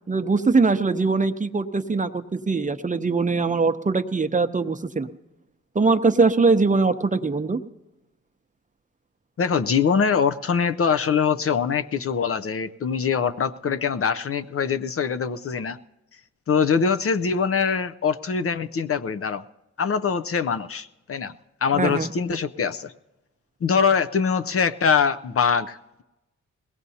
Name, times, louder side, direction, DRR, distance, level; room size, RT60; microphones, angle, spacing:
voice 1, 0.1-5.1 5.7-7.6 21.7-22.1, right 4 dB, 25° right, 9 dB, 0.7 m, -22 dB
voice 2, 9.4-15.8 16.5-19.4 19.8-21.3 21.6-22.9 23.6-26.0, left 6 dB, 50° left, 10 dB, 0.6 m, -23 dB
20.5 x 17.0 x 2.8 m, 1.0 s
cardioid pair, 70°, 29 cm